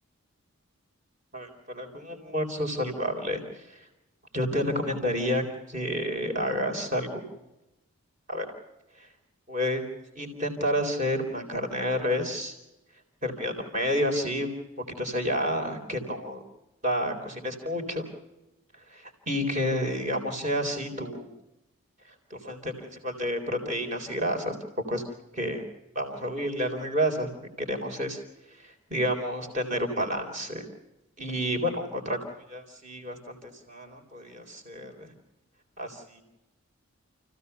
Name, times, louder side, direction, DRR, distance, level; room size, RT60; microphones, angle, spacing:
voice 1, 1.3-3.4 4.3-7.2 8.3-8.5 9.5-9.8 10.2-12.5 13.2-14.5 15.0-16.4 16.8-18.0 18.9-21.3 22.3-24.6 24.9-25.0 25.3-25.6 26.0-28.2 28.9-30.7 31.2-32.2 32.5-35.1 35.8-36.2, equal, 35° right, 4 dB, 3.8 m, -30 dB
29.5 x 16.0 x 6.8 m, 0.96 s
head